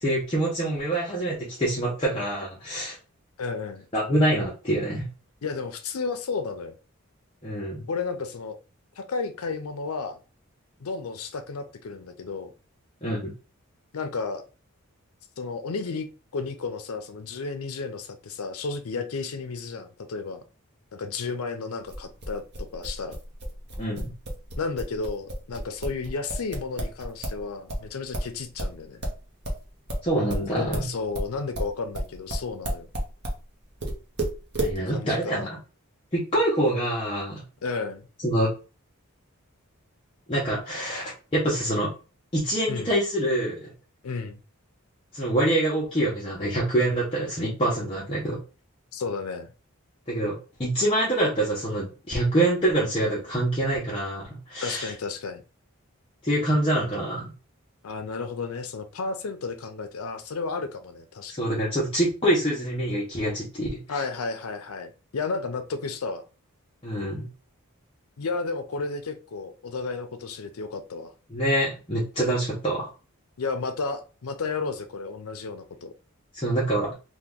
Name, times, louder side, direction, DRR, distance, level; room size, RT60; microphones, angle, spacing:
voice 1, 0.0-3.0 3.9-5.1 7.4-7.8 13.0-13.3 23.8-24.1 30.0-30.8 34.6-35.5 36.1-37.4 38.2-38.5 40.3-41.9 42.3-43.7 45.1-48.4 50.1-50.3 50.6-54.9 56.2-57.3 61.3-64.0 66.8-67.3 71.3-72.9 76.3-76.9, right 1 dB, 25° left, 0.6 m, -25 dB
voice 2, 3.4-3.8 5.4-6.8 7.9-8.6 9.0-10.2 10.8-12.5 13.9-14.4 15.4-16.1 16.3-20.4 20.9-23.2 24.6-29.0 30.5-32.9 34.9-35.5 37.6-38.0 42.7-42.9 44.0-44.4 48.9-49.5 54.6-55.4 57.8-61.5 63.9-66.2 68.2-71.1 73.4-75.9, left 4 dB, 80° left, 0.5 m, -32 dB
sound 1, 21.9-27.4 27.7-33.4 33.8-34.8, right 1 dB, 50° right, 0.8 m, -31 dB
2.9 x 2.2 x 3.5 m
head